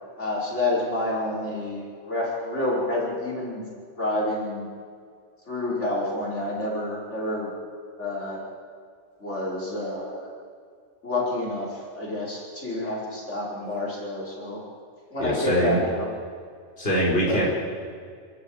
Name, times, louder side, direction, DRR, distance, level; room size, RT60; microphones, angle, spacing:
voice 1, 0.2-1.8 2.0-3.6 4.0-4.7 5.5-7.5 8.0-8.4 9.2-10.3 11.0-14.6 15.1-16.1 17.3-17.4, left 1 dB, 65° left, -4 dB, 5.6 m, -28 dB
voice 2, 15.2-15.8 16.8-17.4, right 1 dB, 50° left, -5 dB, 5.2 m, -23 dB
29.5 x 13.5 x 9.0 m, 2.2 s
omnidirectional pair, 1.3 m